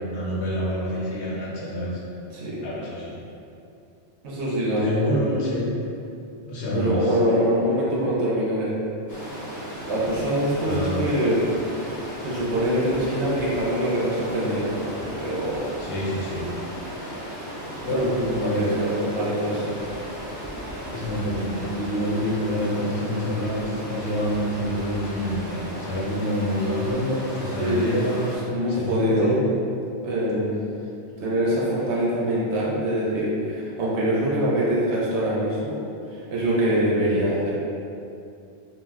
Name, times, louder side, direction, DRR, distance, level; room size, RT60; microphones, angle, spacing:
voice 1, 0.0-2.0 2.6-3.2 4.8-5.7 6.5-7.2 10.7-11.1 15.8-16.5 17.0-17.3 17.8-18.7 20.8-28.3 28.7-29.4 37.0-37.2, equal, 75° left, -6 dB, 1.0 m, -27 dB
voice 2, 4.2-5.1 6.7-8.8 9.9-11.4 11.7-11.9 12.2-14.8 15.1-15.7 17.9-19.8 27.6-27.9 28.5-29.3 30.0-30.6 31.2-35.8 36.1-37.6, right 1 dB, 80° right, -6 dB, 0.9 m, -24 dB
Stream, 9.1-28.4, equal, 20° left, 0.6 m, -35 dB
2.4 x 2.1 x 3.4 m, 2.6 s
omnidirectional pair, 1.2 m